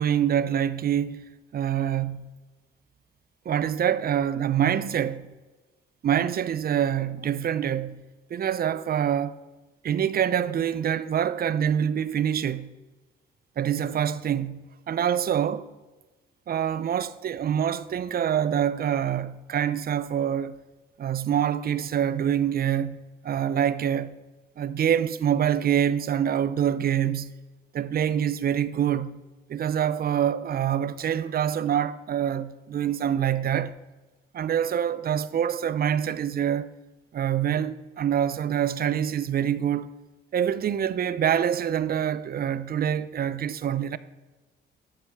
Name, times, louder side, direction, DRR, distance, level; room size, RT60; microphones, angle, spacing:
voice 1, 0.0-2.3 3.5-5.3 6.0-9.4 9.8-12.7 13.6-15.7 16.5-20.6 21.0-24.2 24.6-27.3 27.7-29.2 29.5-33.8 34.3-36.7 37.1-39.9 40.3-44.0, right 9 dB, 50° right, 0.6 m, -26 dB
11.5 x 7.5 x 4.7 m
cardioid pair, 90°, 20 cm